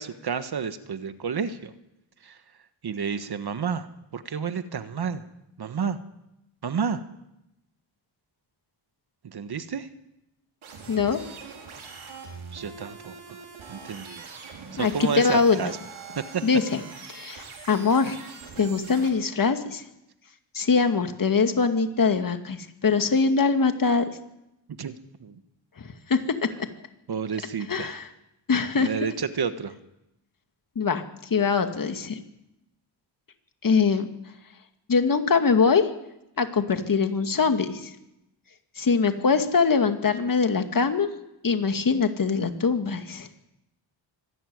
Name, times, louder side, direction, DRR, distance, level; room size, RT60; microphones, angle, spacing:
voice 1, 0.0-1.7 2.2-2.4 2.8-3.9 4.1-5.2 5.6-6.0 6.6-7.0 9.2-9.9 12.5-13.2 13.7-14.3 14.7-15.8 16.1-16.4 24.8-24.9 25.2-25.4 27.1-28.0 28.8-29.7, right 6 dB, 55° right, 10 dB, 1.4 m, -30 dB
sound 1, 10.6-19.1, right 5 dB, 90° right, 5.1 m, -43 dB
voice 2, 10.9-11.2 14.8-15.7 16.4-16.8 17.1-18.2 18.6-19.8 20.5-24.0 26.1-26.2 27.7-28.1 28.5-28.9 30.8-31.0 31.3-32.2 33.6-34.1 34.9-35.8 36.4-37.9 38.8-41.1 41.4-43.3, left 5 dB, 45° left, 7 dB, 2.2 m, -22 dB
24.5 x 12.5 x 9.6 m, 0.88 s
cardioid pair, 95°, 47 cm